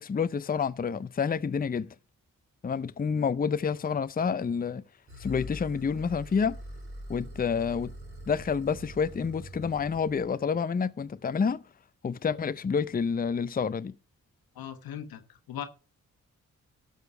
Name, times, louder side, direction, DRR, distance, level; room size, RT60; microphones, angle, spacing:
voice 1, 0.0-1.9 2.6-4.8 5.2-6.6 7.1-7.9 8.3-11.6 12.0-13.9, left 6 dB, 25° left, 0.5 m, -28 dB
sound 1, 5.1-10.3, equal, 35° right, 5.3 m, -44 dB
voice 2, 14.5-15.7, left 9 dB, 90° left, 1.2 m, -39 dB
12.5 x 6.5 x 4.8 m
supercardioid pair, 45°, 35 cm